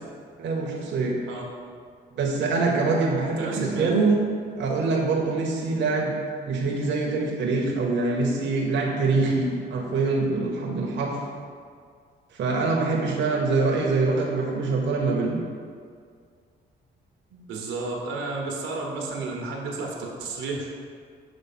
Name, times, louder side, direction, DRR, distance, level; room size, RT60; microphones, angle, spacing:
voice 1, 0.4-1.2 2.1-4.2 4.6-6.1 6.5-11.2 12.3-15.4, right 3 dB, 65° right, -1 dB, 0.8 m, -24 dB
voice 2, 3.4-3.9 17.5-20.7, right 3 dB, 90° right, 0 dB, 1.0 m, -32 dB
6.8 x 3.3 x 4.2 m, 2.1 s
cardioid pair, 90°, 20 cm